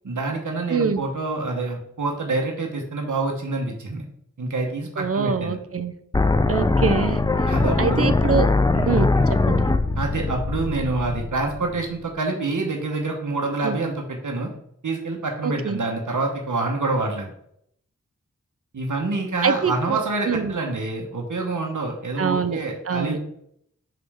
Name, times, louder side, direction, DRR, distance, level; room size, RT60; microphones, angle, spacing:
voice 1, 0.0-4.0 4.4-5.6 7.5-8.1 8.7-9.3 10.0-14.5 14.8-17.3 18.7-23.2, right 3 dB, 85° right, 1 dB, 1.0 m, -27 dB
voice 2, 0.7-1.0 5.0-5.9 6.5-7.2 7.8-8.5 8.9-9.7 13.6-13.8 15.4-15.8 19.4-20.0 20.3-20.5 22.2-22.6 22.9-23.2, right 5 dB, 50° right, 11 dB, 0.6 m, -24 dB
sound 1, 6.1-12.1, left 3 dB, 15° left, 0.3 m, -21 dB
5.9 x 5.1 x 3.5 m, 0.71 s
wide cardioid pair, 70°, 30 cm